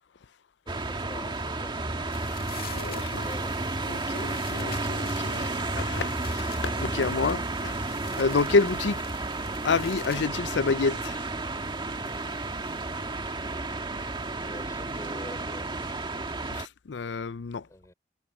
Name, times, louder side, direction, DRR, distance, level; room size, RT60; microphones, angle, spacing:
voice 1, 0.7-2.4 3.2-3.6 14.3-16.0 17.6-17.9, left 1 dB, 20° left, 4.0 m, -46 dB
sound 1, 0.7-16.7, right 2 dB, 25° right, 1.7 m, -32 dB
sound 2, 2.0-10.3, left 9 dB, 55° left, 2.2 m, -48 dB
voice 2, 2.7-3.2 3.9-7.8 8.2-9.0 9.6-11.2 16.5-17.7, left 4 dB, 75° left, 0.5 m, -28 dB
head